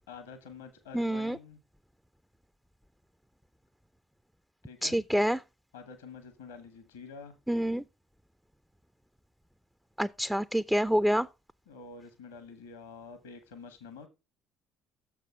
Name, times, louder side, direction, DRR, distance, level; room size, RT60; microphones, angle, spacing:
voice 1, 0.1-1.6 4.6-5.0 5.7-7.3 11.7-14.1, left 5 dB, 75° left, 1.0 m, -47 dB
voice 2, 0.9-1.4 4.8-5.4 7.5-7.8 10.0-11.3, equal, 5° right, 0.4 m, -27 dB
6.8 x 6.1 x 4.7 m
figure-of-eight pair, 55°, 0 cm